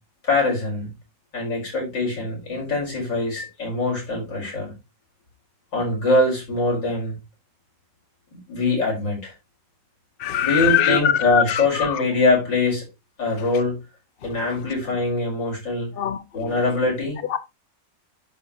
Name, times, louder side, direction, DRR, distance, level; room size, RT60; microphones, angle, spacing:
voice 1, 0.2-0.9 1.3-4.7 5.7-7.1 8.3-9.3 10.4-12.8 13.2-13.8 14.2-15.9 16.3-17.2, left 2 dB, 85° left, 5.9 m, -23 dB
voice 2, 10.2-12.0 14.2-14.3 16.0-16.5 17.3-17.4, left 10 dB, 45° left, 0.8 m, -23 dB
11.0 x 5.7 x 3.1 m
omnidirectional pair, 1.9 m